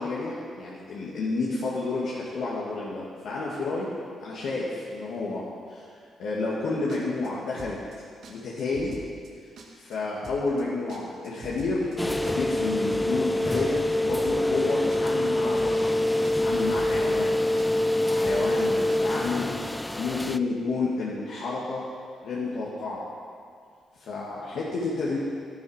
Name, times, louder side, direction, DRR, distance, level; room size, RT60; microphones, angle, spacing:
voice 1, 0.0-5.9 6.2-7.8 8.3-9.0 9.8-15.9 16.3-17.3 17.8-19.6 20.0-21.9 22.2-23.0 24.0-25.2, left 3 dB, 75° left, -6 dB, 2.1 m, -30 dB
sound 1, 6.9-7.3 7.6-8.0 8.2-8.3 8.6-9.3 9.6-10.0 10.2-10.6 10.9-12.6 12.9-13.3 13.6-14.6 14.9-15.3 15.6-16.0 16.2-16.3 16.6-17.3 17.6-18.0 18.2-18.6 18.9-19.0, right 4 dB, 70° right, 1.9 m, -44 dB
sound 2, 12.0-20.4, left 1 dB, 10° left, 0.4 m, -25 dB
12.0 x 11.0 x 5.1 m, 2.3 s
cardioid pair, 95°, 0 cm